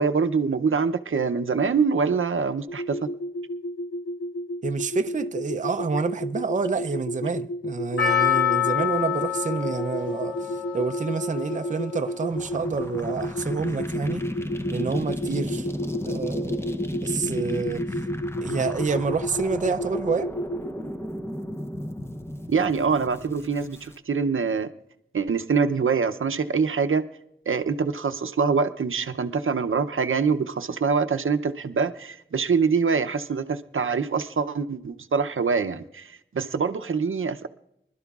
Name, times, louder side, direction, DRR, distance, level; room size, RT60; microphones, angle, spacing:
voice 1, 0.0-3.0 22.5-24.7 25.1-27.0 27.5-37.5, right 5 dB, 75° right, 0.6 m, -24 dB
sound 1, 2.7-20.7, equal, 90° left, 0.5 m, -32 dB
voice 2, 4.6-14.2 14.7-15.7 16.1-17.9 18.4-20.3, right 4 dB, 40° right, 0.5 m, -28 dB
Percussion, 8.0-12.3 12.6-12.7, left 10 dB, 70° left, 2.4 m, -27 dB
sound 2, 12.3-24.0, left 1 dB, 10° left, 0.6 m, -34 dB
25.0 x 12.0 x 2.4 m
wide cardioid pair, 75°, 21 cm